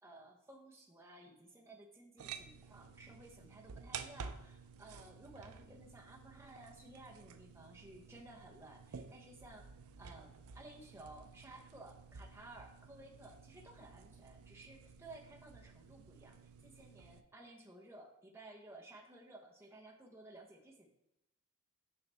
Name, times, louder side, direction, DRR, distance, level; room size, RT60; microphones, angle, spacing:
voice 1, 0.0-20.9, right 2 dB, 10° right, 0 dB, 0.9 m, -56 dB
sound 1, 2.2-17.2, right 6 dB, 75° right, 0.5 m, -53 dB
6.9 x 5.7 x 3.5 m, 0.89 s
head